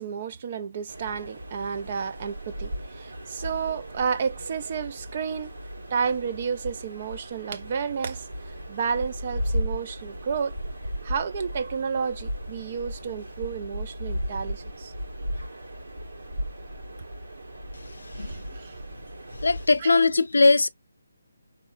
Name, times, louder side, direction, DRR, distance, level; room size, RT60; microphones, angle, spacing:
voice 1, 0.0-5.5 5.9-10.5 11.0-14.9 18.1-18.8 19.8-19.9, right 6 dB, 30° right, 0.3 m, -31 dB
sound 1, 0.9-19.7, equal, 85° right, 1.7 m, -36 dB
voice 2, 19.4-20.7, left 3 dB, 90° left, 0.4 m, -19 dB
3.0 x 2.9 x 2.4 m
hypercardioid pair, 175°, 0 cm